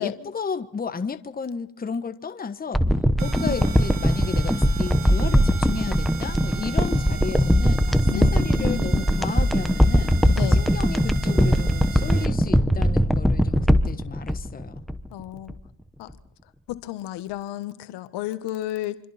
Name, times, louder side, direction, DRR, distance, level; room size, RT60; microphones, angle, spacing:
voice 1, 0.0-2.9 3.2-14.8, left 5 dB, 20° left, 9 dB, 1.2 m, -33 dB
sound 1, 2.7-15.2 15.5-15.6, equal, ahead, 1.1 m, -21 dB
sound 2, 3.2-12.3, right 9 dB, 50° right, 1.7 m, -39 dB
voice 2, 8.0-8.9 10.3-10.6 15.1-15.5 16.0-16.1 16.7-19.0, left 14 dB, 70° left, 11 dB, 1.5 m, -32 dB
25.5 x 25.5 x 4.3 m, 0.70 s
supercardioid pair, 85°, 42 cm